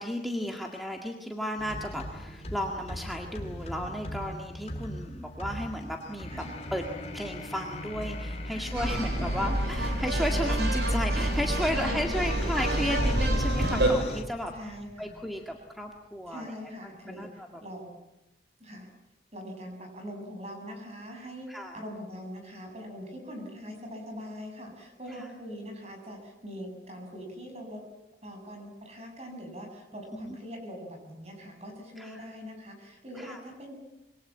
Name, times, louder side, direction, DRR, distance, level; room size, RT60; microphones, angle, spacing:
voice 1, 0.0-6.3 6.7-6.8 7.1-14.7 15.0-16.5 17.1-17.6 21.5-21.8 25.2-25.3 30.1-30.4 32.0-32.2 33.2-33.4, equal, ahead, 2 dB, 1.9 m, -34 dB
sound 1, 1.6-14.2, left 1 dB, 35° left, 2.9 m, -40 dB
voice 2, 6.3-6.6 8.5-9.4 11.7-12.5 14.5-15.1 16.3-18.0 18.6-18.9 19.3-21.5 21.7-27.8 28.2-33.7, equal, 35° right, 3 dB, 7.6 m, -42 dB
sound 2, 8.7-13.9, right 1 dB, 70° right, 6.9 m, -28 dB
Explosion, 13.0-16.3, equal, 75° left, 3.5 m, -36 dB
26.5 x 23.0 x 8.6 m, 0.97 s
head